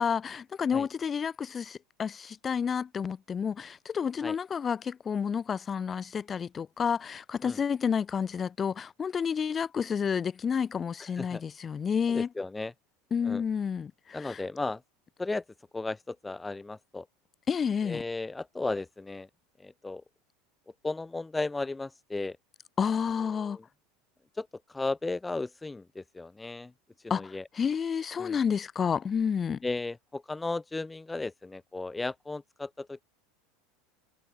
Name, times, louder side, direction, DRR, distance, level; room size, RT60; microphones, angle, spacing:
voice 1, 0.0-12.3 13.1-14.4 17.5-18.0 22.8-23.6 27.1-29.6, left 7 dB, 30° left, 1.2 m, -30 dB
voice 2, 12.1-12.7 13.2-13.4 14.1-14.8 15.2-15.4 15.7-17.0 17.8-19.3 19.6-20.0 20.8-22.4 23.4-23.6 24.3-26.7 27.0-27.4 28.2-28.4 29.6-33.0, left 3 dB, 10° left, 0.7 m, -35 dB
hypercardioid pair, 80°, 0 cm